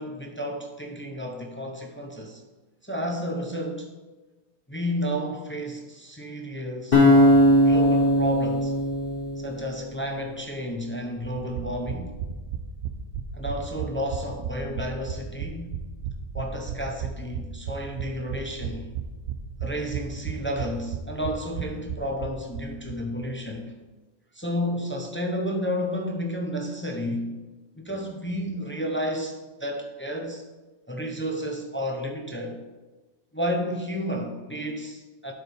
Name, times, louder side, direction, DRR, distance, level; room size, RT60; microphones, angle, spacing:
voice 1, 0.0-2.4 2.8-3.9 4.7-7.0 7.6-8.7 9.4-12.1 13.3-15.8 16.3-18.9 19.6-23.7 24.3-27.4 27.7-30.4 30.9-32.6 33.3-35.3, equal, 15° left, 2 dB, 0.6 m, -31 dB
sound 1, 6.9-10.1, equal, 55° left, 1.4 m, -19 dB
sound 2, 11.2-23.0 23.2-23.3 23.6-23.7, right 7 dB, 80° right, 0.9 m, -34 dB
11.5 x 4.7 x 3.5 m, 1.2 s
omnidirectional pair, 1.2 m